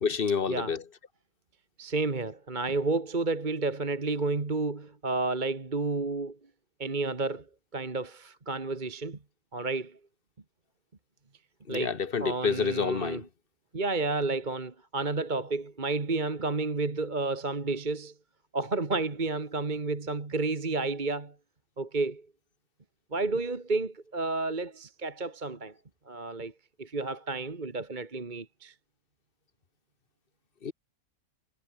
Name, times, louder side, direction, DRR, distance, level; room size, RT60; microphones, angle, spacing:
voice 1, 0.0-0.8 11.7-13.3 30.6-30.7, left 6 dB, 40° left, 1.2 m, -28 dB
voice 2, 1.8-6.4 6.8-7.5 7.7-9.2 9.5-10.0 11.7-13.2 13.7-18.1 18.5-21.4 21.8-22.3 23.1-25.7 26.1-26.5 26.8-28.7, right 3 dB, 35° right, 1.9 m, -31 dB
omnidirectional pair, 1.5 m